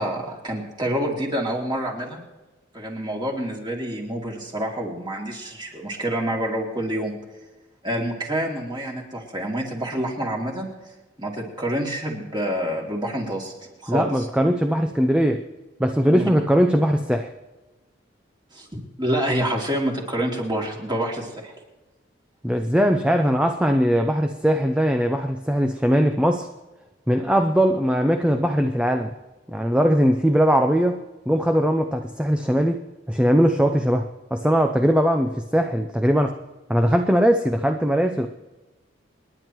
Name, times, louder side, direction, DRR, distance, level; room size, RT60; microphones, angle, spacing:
voice 1, 0.0-2.2 2.7-7.1 7.8-10.7 11.2-13.5 13.8-14.2 16.1-16.3 18.5-21.5, right 1 dB, 25° right, -1 dB, 2.7 m, -27 dB
voice 2, 13.9-15.4 15.8-17.3 22.4-26.5 27.1-29.1 29.5-31.0 31.3-32.8 33.1-36.3 36.7-38.3, equal, 5° right, 5 dB, 0.5 m, -20 dB
28.0 x 10.5 x 3.1 m, 1.1 s
head